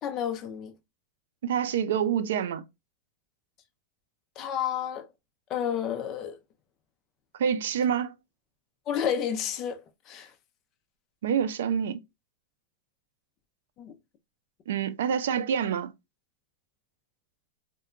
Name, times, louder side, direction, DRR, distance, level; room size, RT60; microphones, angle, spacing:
voice 1, 0.0-0.7 4.4-5.1 5.5-6.4 8.9-9.8 10.1-10.3 13.8-14.0, left 9 dB, 30° left, 0.4 m, -30 dB
voice 2, 1.4-2.6 7.4-8.1 11.2-12.0 14.7-15.9, right 8 dB, 85° right, 0.3 m, -27 dB
2.8 x 2.2 x 2.3 m
supercardioid pair, 160°, 0 cm